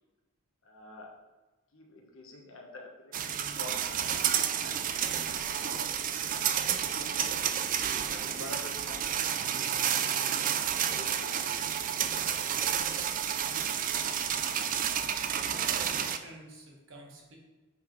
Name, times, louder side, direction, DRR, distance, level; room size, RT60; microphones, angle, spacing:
voice 1, 0.6-1.1 1.7-3.1 3.4-4.8 5.2-5.8 6.3-6.7 7.0-7.4 8.0-9.7 10.0-11.8 12.3-12.4, left 2 dB, 70° left, 1 dB, 1.2 m, -48 dB
sound 1, 3.1-16.2, right 9 dB, 40° right, 0.3 m, -30 dB
voice 2, 15.4-17.4, right 1 dB, 65° right, -1 dB, 1.5 m, -48 dB
9.6 x 3.9 x 3.1 m, 1.2 s
head